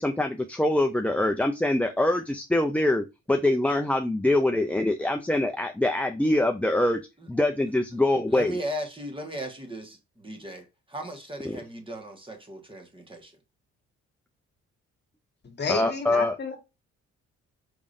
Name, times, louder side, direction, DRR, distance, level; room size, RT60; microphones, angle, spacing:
voice 1, 0.0-7.0 7.3-8.6 11.4-11.6 15.7-16.4, left 1 dB, 5° left, 0.5 m, -24 dB
voice 2, 8.3-13.3, equal, 15° right, 1.5 m, -36 dB
voice 3, 15.4-16.6, left 5 dB, 35° left, 1.4 m, -31 dB
4.9 x 3.6 x 2.6 m
cardioid pair, 90°, 30 cm